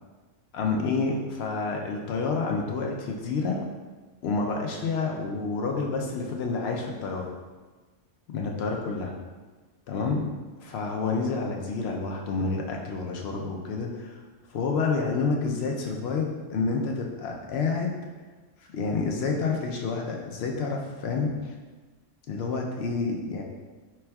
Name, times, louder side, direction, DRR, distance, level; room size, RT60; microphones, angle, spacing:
voice 1, 0.5-3.6 4.2-7.3 8.3-9.1 9.9-10.3 10.6-14.2 14.5-17.9 18.7-21.3 22.3-23.4, left 4 dB, 65° left, 1 dB, 0.7 m, -29 dB
4.5 x 3.4 x 2.2 m, 1.3 s
omnidirectional pair, 1.3 m